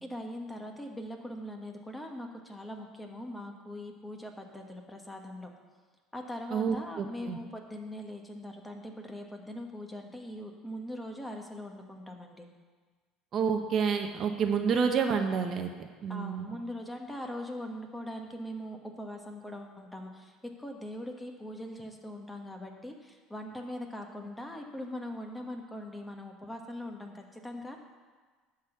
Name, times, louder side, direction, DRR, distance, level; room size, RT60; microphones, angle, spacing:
voice 1, 0.0-5.5 6.1-12.5 16.1-27.8, left 1 dB, 10° left, 2 dB, 1.2 m, -41 dB
voice 2, 6.5-7.4 13.3-15.7 16.0-16.6, right 6 dB, 45° right, 5 dB, 0.8 m, -29 dB
11.5 x 4.1 x 7.9 m, 1.5 s
supercardioid pair, 110°, 0 cm